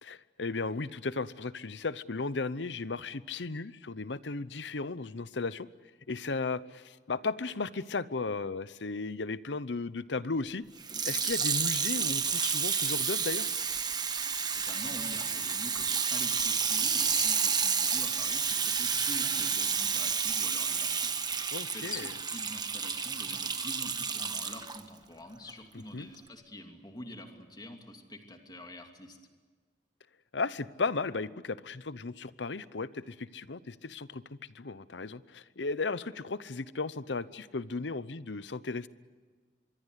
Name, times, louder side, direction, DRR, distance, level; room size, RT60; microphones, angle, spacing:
voice 1, 0.0-5.7 6.1-10.6 11.0-13.5 21.5-22.1 25.9-26.1 30.3-34.2 34.5-38.9, left 3 dB, 85° left, 16 dB, 0.8 m, -35 dB
Water tap faucet / Sink (filling or washing), 10.8-24.8 25.5-25.6, right 6 dB, 25° right, 1.3 m, -30 dB
voice 2, 14.5-29.2, left 1 dB, 25° left, 4 dB, 2.8 m, -46 dB
25.0 x 23.5 x 8.2 m, 1.4 s
head